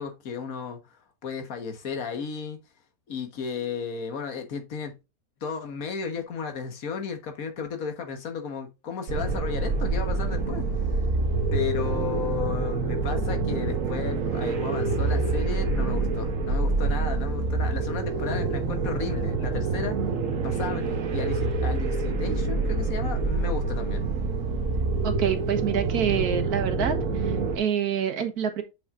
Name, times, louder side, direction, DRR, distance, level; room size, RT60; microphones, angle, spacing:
voice 1, 0.0-2.6 3.1-4.9 5.4-10.6 10.9-11.0 11.5-20.0 20.4-24.0, left 6 dB, 70° left, 1.6 m, -34 dB
sound 1, 9.1-27.6, right 3 dB, 60° right, 1.4 m, -26 dB
voice 2, 25.0-27.0 27.2-28.6, right 8 dB, 85° right, 1.7 m, -27 dB
7.1 x 5.9 x 2.5 m
omnidirectional pair, 1.6 m